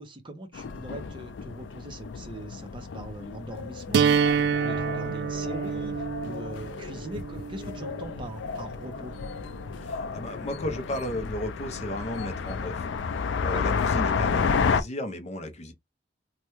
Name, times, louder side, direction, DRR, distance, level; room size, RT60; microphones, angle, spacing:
voice 1, 0.0-9.2 13.5-13.6, right 1 dB, 30° right, 0.6 m, -41 dB
sound 1, 0.5-14.8, left 5 dB, 85° left, 0.4 m, -31 dB
sound 2, 3.9-9.9, right 6 dB, 65° right, 0.3 m, -28 dB
voice 2, 9.8-15.7, left 1 dB, 40° left, 0.6 m, -35 dB
3.2 x 2.2 x 2.9 m
head